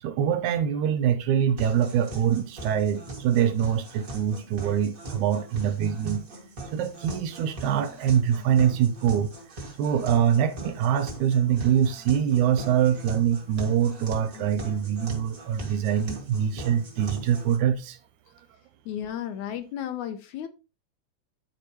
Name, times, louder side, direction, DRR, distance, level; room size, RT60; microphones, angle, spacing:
voice 1, 0.0-6.2 6.7-9.3 9.8-18.0, right 9 dB, 75° right, 2.0 m, -24 dB
sound 1, 1.6-17.6, right 2 dB, 30° right, 1.9 m, -41 dB
voice 2, 18.9-20.5, left 10 dB, 75° left, 1.9 m, -33 dB
11.5 x 4.8 x 3.0 m
omnidirectional pair, 3.8 m